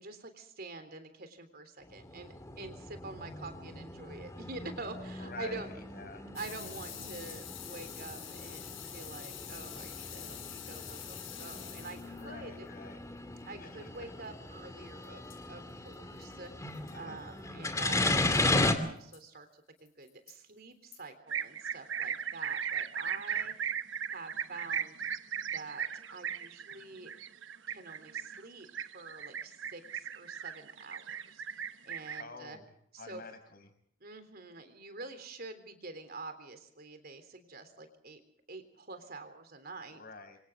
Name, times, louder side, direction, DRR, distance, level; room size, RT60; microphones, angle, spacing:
voice 1, 0.0-5.7 6.3-10.4 10.7-12.7 13.5-15.2 15.5-23.5 24.1-25.0 25.5-27.1 27.7-28.7 28.9-32.6 32.9-33.2 34.0-38.2 38.5-40.0, right 3 dB, 50° right, 9 dB, 3.5 m, -47 dB
sound 1, 1.9-18.7, left 2 dB, 15° left, 2.4 m, -36 dB
voice 2, 5.2-6.2 12.1-13.0 13.6-14.1 16.9-17.2 23.3-23.5 32.1-32.6 33.0-33.7 39.9-40.4, left 3 dB, 50° left, 7 dB, 6.3 m, -48 dB
sound 2, 6.3-12.2 15.0-15.1 15.3-15.4 15.9-16.0 16.2-16.3 16.7-16.9 18.3-18.6 19.1-19.2 19.8-20.3 20.9-21.0, left 10 dB, 85° left, 7.7 m, -46 dB
sound 3, 21.3-32.2, right 8 dB, 70° right, 1.1 m, -37 dB
27.0 x 25.5 x 3.8 m, 0.66 s
head